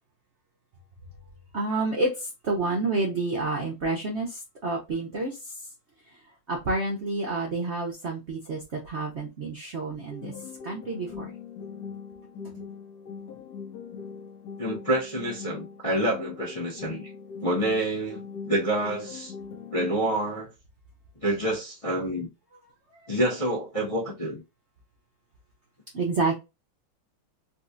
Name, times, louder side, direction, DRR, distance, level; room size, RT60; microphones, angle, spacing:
voice 1, 1.5-5.5 6.5-10.3 10.6-11.3 25.9-26.4, right 3 dB, 80° right, 0.6 m, -29 dB
sound 1, 10.1-20.1, left 6 dB, 65° left, 1.1 m, -41 dB
voice 2, 14.6-17.1 17.4-19.3 19.7-20.5 21.2-22.3 23.1-24.4, right 1 dB, 35° left, 0.5 m, -27 dB
4.1 x 2.3 x 2.5 m
omnidirectional pair, 2.3 m